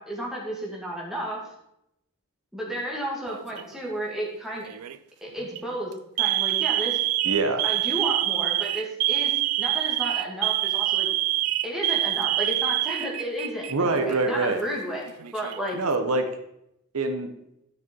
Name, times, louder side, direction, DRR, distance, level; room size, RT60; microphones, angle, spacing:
voice 1, 0.0-1.4 2.5-4.7 5.2-5.9 6.2-7.0 7.6-9.3 9.6-11.1 11.6-15.8, right 1 dB, ahead, -4 dB, 2.2 m, -32 dB
Alarm, 3.3-3.8 4.7-5.0 5.4-5.6 6.2-13.7 14.0-14.1 15.1-15.8, right 17 dB, 90° right, 0.4 m, -26 dB
voice 2, 7.2-7.6 13.7-14.6 15.7-16.3 16.9-17.3, right 3 dB, 70° right, 7 dB, 0.9 m, -24 dB
11.5 x 6.2 x 4.5 m, 0.82 s
head